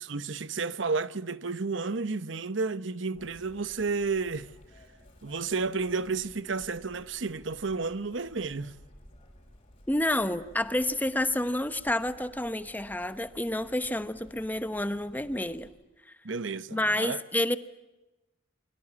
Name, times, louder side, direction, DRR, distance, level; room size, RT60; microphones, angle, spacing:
voice 1, 0.0-4.5 5.2-8.7 16.2-17.2, right 4 dB, 65° right, 0.9 m, -31 dB
Chirp tweet, 3.1-15.7, equal, 30° left, 6.7 m, -55 dB
voice 2, 9.9-15.7 16.7-17.6, left 1 dB, 10° left, 1.1 m, -29 dB
28.0 x 22.5 x 8.5 m
head